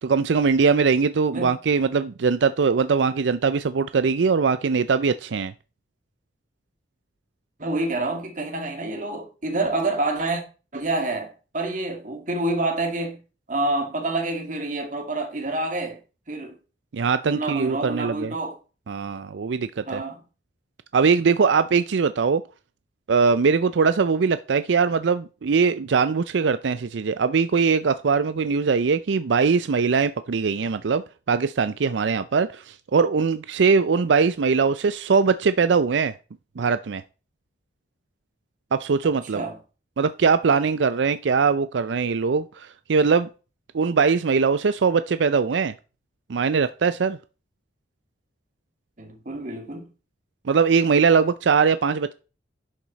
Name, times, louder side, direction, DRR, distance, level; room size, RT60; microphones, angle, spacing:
voice 1, 0.0-5.5 16.9-18.3 18.9-20.0 20.9-22.4 23.1-36.1 36.6-37.0 38.7-39.4 40.0-43.3 43.7-45.7 46.3-47.2 50.5-52.1, right 5 dB, 85° right, 0.5 m, -21 dB
voice 2, 7.6-10.4 10.7-13.2 13.5-16.0 16.3-16.6 17.3-18.6 19.9-20.2 39.3-39.6 49.0-49.9, right 2 dB, 45° right, 2.2 m, -27 dB
11.0 x 7.3 x 4.0 m
head